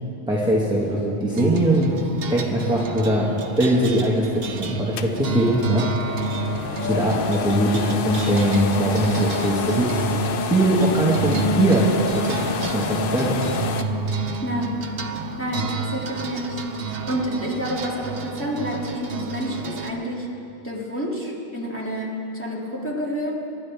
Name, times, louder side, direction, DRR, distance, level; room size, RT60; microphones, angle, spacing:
voice 1, 0.3-1.9 2.3-5.9 6.8-10.1 10.4-11.9 12.1-13.4, right 1 dB, 5° right, -5 dB, 1.4 m, -21 dB
sound 1, 1.3-19.9, right 3 dB, 65° right, 1.0 m, -30 dB
sound 2, 5.0-13.8, left 4 dB, 60° left, 0.8 m, -28 dB
voice 2, 6.8-7.1 14.4-14.8 15.4-20.3 20.6-23.3, equal, 10° left, -5 dB, 2.3 m, -29 dB
24.5 x 11.5 x 3.4 m, 2.7 s
omnidirectional pair, 1.1 m